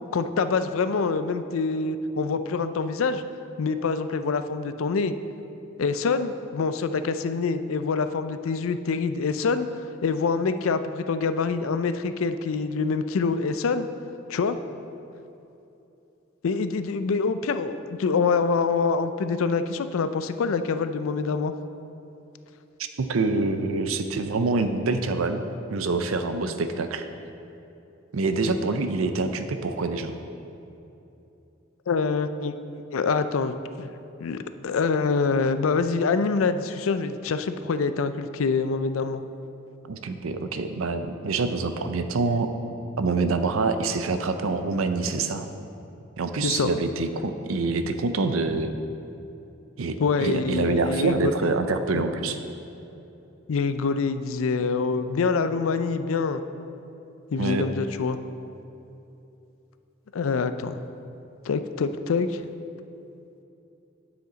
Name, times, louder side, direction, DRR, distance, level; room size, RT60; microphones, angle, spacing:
voice 1, 0.1-3.2 3.6-5.1 5.8-9.7 10.0-13.9 14.3-14.6 16.4-21.5 31.9-32.5 32.9-33.9 34.2-39.2 46.4-46.7 50.0-51.3 51.9-52.0 53.5-56.4 57.3-58.2 60.1-60.8 61.5-62.4, left 4 dB, 80° left, 11 dB, 0.4 m, -25 dB
voice 2, 23.0-25.4 25.7-27.0 28.1-30.1 39.8-42.5 43.0-45.5 46.2-48.7 49.8-52.4 57.4-57.7, right 3 dB, 90° right, 8 dB, 0.6 m, -26 dB
9.4 x 7.1 x 3.9 m, 2.9 s
head